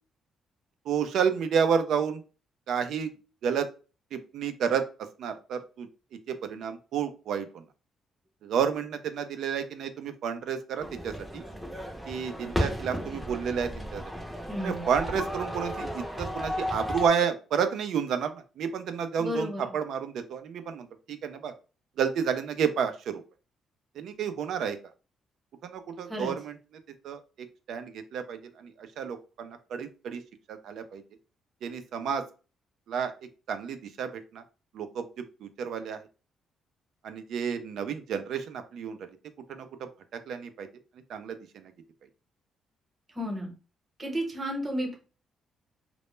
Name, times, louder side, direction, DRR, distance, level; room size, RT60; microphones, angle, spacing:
voice 1, 0.9-2.2 2.7-3.1 3.4-3.7 4.1-5.9 6.3-7.6 8.4-11.4 12.1-14.0 14.6-21.5 22.0-23.2 24.0-24.8 25.6-26.6 27.0-30.2 30.5-31.0 31.6-32.2 32.9-33.1 33.5-34.4 34.7-36.0 37.0-39.1 39.5-40.7 41.1-41.7, right 7 dB, 75° right, 8 dB, 0.3 m, -31 dB
sound 1, 10.8-17.1, equal, ahead, 0.5 m, -34 dB
voice 2, 14.5-14.9 19.2-19.6 26.1-26.3 43.1-43.5 44.0-45.0, equal, 25° right, 1 dB, 0.9 m, -32 dB
2.1 x 2.0 x 3.0 m, 0.34 s
cardioid pair, 90°, 0 cm